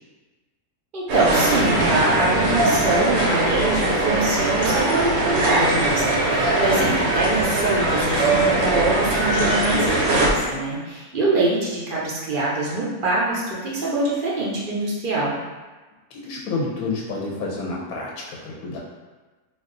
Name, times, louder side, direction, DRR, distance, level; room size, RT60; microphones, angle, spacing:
voice 1, 0.9-15.3, right 2 dB, 55° right, -6 dB, 0.5 m, -24 dB
sound 1, 1.1-10.3, right 2 dB, 70° right, 1.0 m, -21 dB
voice 2, 6.8-7.1 16.1-18.8, left 3 dB, 70° left, -3 dB, 0.9 m, -29 dB
2.6 x 2.3 x 3.7 m, 1.3 s
omnidirectional pair, 1.6 m